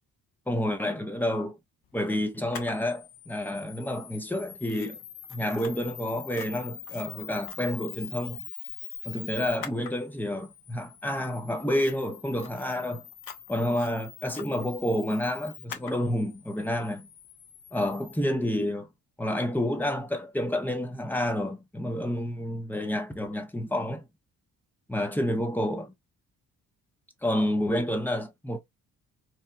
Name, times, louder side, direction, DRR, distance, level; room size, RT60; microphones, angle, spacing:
voice 1, 0.5-1.6 1.9-5.0 5.3-8.4 9.0-13.0 13.5-17.1 17.7-18.9 19.2-24.1 24.9-25.9 27.2-28.6, left 1 dB, 5° left, 0.5 m, -29 dB
Camera, 2.5-18.2, left 9 dB, 50° left, 0.7 m, -44 dB
2.8 x 2.1 x 2.4 m
figure-of-eight pair, 45°, 46 cm